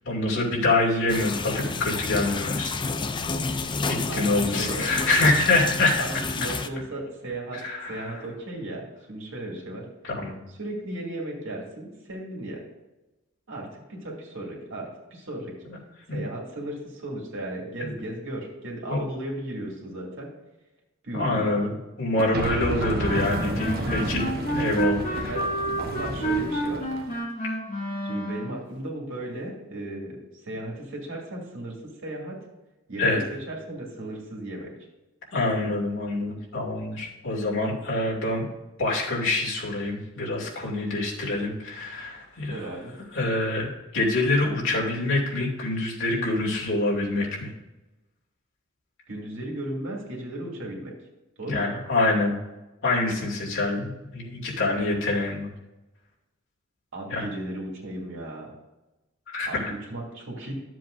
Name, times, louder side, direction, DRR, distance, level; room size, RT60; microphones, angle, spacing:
voice 1, 0.0-2.7 3.9-6.0 7.6-8.2 10.0-10.4 16.1-16.2 17.8-17.9 18.9-19.0 21.1-25.3 33.0-33.2 35.3-38.4 38.8-42.6 43.1-47.5 51.5-52.4 52.8-55.5 57.1-57.3 59.3-59.7, left 2 dB, 65° left, -4 dB, 2.7 m, -26 dB
water run from tap faucet into large metal sink roomy, 1.1-6.7, left 4 dB, 20° left, 0.4 m, -30 dB
voice 2, 4.1-4.9 6.0-7.6 7.9-9.8 10.6-12.6 13.5-15.5 16.1-20.3 21.0-21.6 24.6-25.4 25.8-26.9 28.0-31.8 32.0-32.3 32.9-33.2 33.5-34.7 42.5-42.9 49.1-50.9 51.4-51.7 56.9-58.5 59.5-60.5, right 1 dB, 65° right, -2 dB, 2.6 m, -35 dB
sound 1, 22.2-27.2, right 1 dB, 45° right, 1.1 m, -31 dB
sound 2, 23.0-28.6, right 1 dB, 40° left, 2.4 m, -29 dB
12.0 x 7.6 x 2.7 m, 1.0 s
head